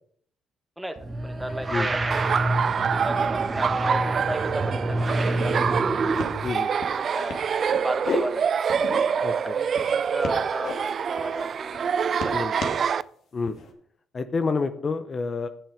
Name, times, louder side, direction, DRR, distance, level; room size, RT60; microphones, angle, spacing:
sound 1, 1.0-6.5, right 2 dB, 30° right, 1.2 m, -27 dB
voice 1, 1.2-2.4 2.7-5.7 6.5-6.6 7.0-7.5 7.8-8.5 9.3-12.6, right 1 dB, 5° right, 7 dB, 1.5 m, -35 dB
Laughter, 2.1-13.0, right 7 dB, 50° right, 0.4 m, -26 dB
sound 2, 5.2-5.3 5.5-5.9 6.2-6.4 6.8-7.0 7.3-8.2 8.7-9.3 9.7-10.7 11.2-11.4 11.7-12.8 13.4-13.7, left 4 dB, 65° left, 2.3 m, -34 dB
voice 2, 9.2-9.6 12.3-12.5 13.3-13.5 14.1-15.5, left 4 dB, 40° left, 9 dB, 0.8 m, -28 dB
10.0 x 7.3 x 5.0 m, 0.62 s
supercardioid pair, 70°, 0 cm